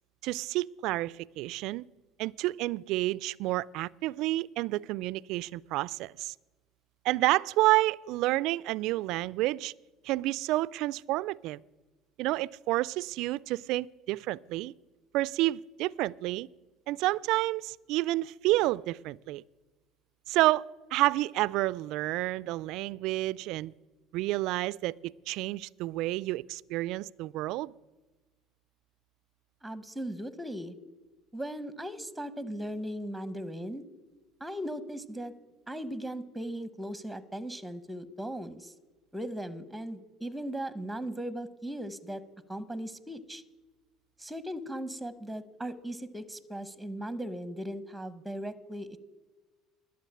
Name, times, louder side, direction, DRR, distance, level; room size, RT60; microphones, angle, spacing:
voice 1, 0.2-1.8 2.2-6.3 7.0-9.7 10.0-11.6 12.2-14.7 15.1-16.5 16.9-19.4 20.3-23.7 24.1-27.7, right 18 dB, 65° right, 0.3 m, -29 dB
voice 2, 29.6-30.7 31.3-33.8 34.4-35.3 35.7-38.7 39.1-42.2 42.5-43.4 44.2-49.0, right 1 dB, 5° right, 0.8 m, -38 dB
12.0 x 7.2 x 8.5 m
hypercardioid pair, 80°, 0 cm